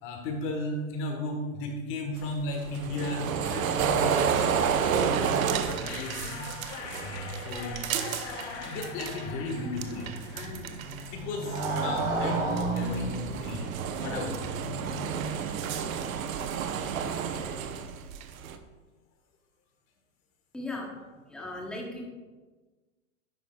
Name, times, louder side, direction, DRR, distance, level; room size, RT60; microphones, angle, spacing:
voice 1, 0.0-6.5 7.0-10.8 11.1-13.7 14.0-14.5 16.3-16.4, left 2 dB, 30° left, 3 dB, 1.4 m, -35 dB
sound 1, 2.2-9.2 9.5-11.1 11.4-18.6, right 7 dB, 75° right, 0.9 m, -31 dB
sound 2, 5.8-11.4, left 6 dB, 55° left, 1.1 m, -42 dB
Motorcycle, 8.4-16.4, right 2 dB, 45° right, 2.5 m, -34 dB
voice 2, 20.5-22.0, left 2 dB, ahead, -1 dB, 0.9 m, -38 dB
10.5 x 8.1 x 2.3 m, 1.3 s
supercardioid pair, 150°, 42 cm